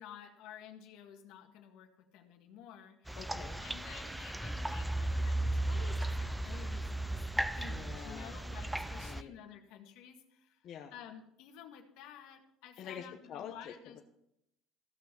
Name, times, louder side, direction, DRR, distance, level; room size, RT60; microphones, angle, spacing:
voice 1, 0.0-3.2 3.6-7.2 7.5-10.6 10.9-14.0, left 9 dB, 75° left, 4 dB, 1.9 m, -52 dB
voice 2, 3.1-3.7 7.6-8.3 8.9-9.3 10.6-10.9 12.8-14.0, left 8 dB, 50° left, 2 dB, 1.1 m, -47 dB
sound 1, 3.1-9.2, right 1 dB, 5° right, 0.4 m, -35 dB
15.5 x 5.7 x 7.0 m, 0.81 s
cardioid pair, 120°, 0 cm